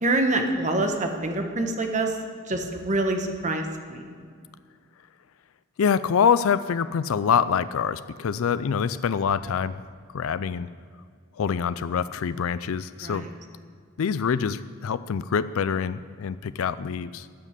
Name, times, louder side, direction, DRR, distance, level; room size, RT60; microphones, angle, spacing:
voice 1, 0.0-2.2 2.5-4.1 13.0-13.3, right 2 dB, 35° right, 4 dB, 1.3 m, -26 dB
voice 2, 5.8-9.8 10.1-10.7 11.4-13.2 14.0-17.3, left 7 dB, 65° left, 14 dB, 0.4 m, -25 dB
13.5 x 7.3 x 8.4 m, 2.1 s
head